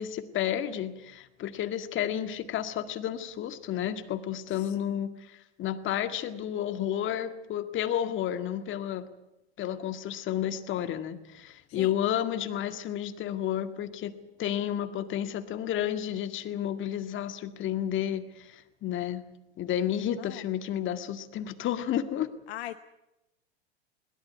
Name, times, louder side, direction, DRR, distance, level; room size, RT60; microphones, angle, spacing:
voice 1, 0.0-5.3 5.6-9.1 9.6-14.1 14.4-19.2 19.6-22.3, left 10 dB, 35° left, 9 dB, 2.0 m, -31 dB
voice 2, 4.5-5.0 11.7-11.9 20.1-20.4 22.5-22.8, left 13 dB, 70° left, 11 dB, 1.0 m, -41 dB
21.5 x 17.5 x 9.5 m, 0.93 s
hypercardioid pair, 90°, 33 cm